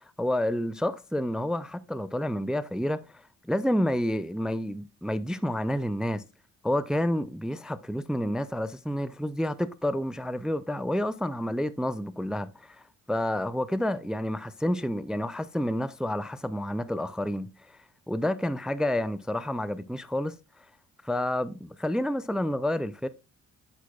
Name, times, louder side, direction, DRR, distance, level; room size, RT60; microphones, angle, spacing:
voice 1, 0.2-6.2 6.6-17.8 18.1-20.3 21.0-23.1, left 1 dB, ahead, 0.3 m, -29 dB
8.1 x 6.3 x 2.2 m
cardioid pair, 90°, 30 cm